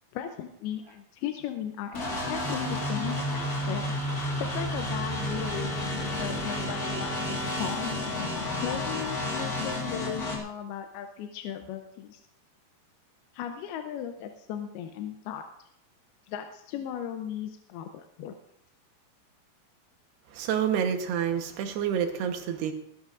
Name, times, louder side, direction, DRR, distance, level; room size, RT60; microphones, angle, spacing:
voice 1, 0.1-3.9 4.4-8.0 8.6-12.2 13.3-15.5 16.3-18.4, left 9 dB, 80° left, 6 dB, 2.5 m, -37 dB
sound 1, 1.9-10.4, left 1 dB, 60° left, 0.9 m, -31 dB
voice 2, 20.3-22.7, right 8 dB, 80° right, 6 dB, 3.1 m, -28 dB
18.5 x 12.0 x 2.5 m, 0.78 s
omnidirectional pair, 4.7 m